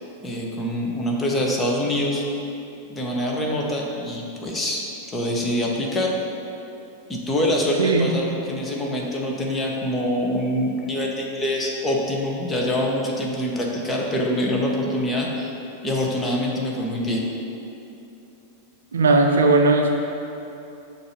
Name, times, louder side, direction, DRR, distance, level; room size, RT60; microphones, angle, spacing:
voice 1, 0.2-2.2 2.9-4.8 5.1-6.1 7.1-15.5 15.8-17.2, left 1 dB, 15° left, -2 dB, 0.9 m, -25 dB
voice 2, 18.9-19.9, right 3 dB, 70° right, 3 dB, 0.5 m, -17 dB
6.7 x 2.7 x 5.6 m, 2.9 s
figure-of-eight pair, 90°, 0 cm